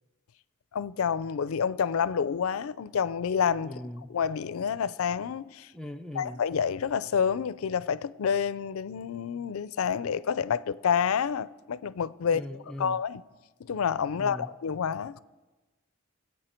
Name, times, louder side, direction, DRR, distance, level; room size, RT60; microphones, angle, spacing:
voice 1, 0.7-3.8 4.1-5.7 6.2-12.5 12.8-13.2 13.6-15.2, left 7 dB, 80° left, 0.4 m, -28 dB
voice 2, 3.6-4.1 5.7-6.4 12.2-13.0 14.2-14.5, left 1 dB, 5° left, 0.4 m, -40 dB
21.0 x 8.4 x 4.4 m
head